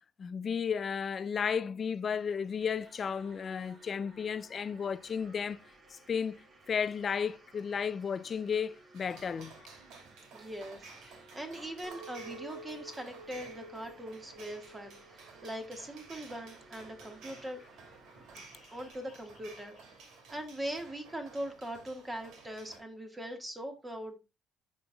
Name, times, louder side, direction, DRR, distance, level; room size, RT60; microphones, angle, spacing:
voice 1, 0.2-5.6 5.9-9.5, left 6 dB, 40° left, 0.4 m, -33 dB
sound 1, 1.9-18.9, right 2 dB, 35° right, 1.8 m, -59 dB
sound 2, 8.9-22.8, right 4 dB, 90° right, 2.5 m, -54 dB
voice 2, 10.3-17.6 18.7-24.2, right 1 dB, 15° right, 1.5 m, -41 dB
Chink clink, 11.8-16.2 16.6-17.2, right 2 dB, 70° right, 1.6 m, -51 dB
11.0 x 5.2 x 2.3 m
cardioid pair, 125°, 0 cm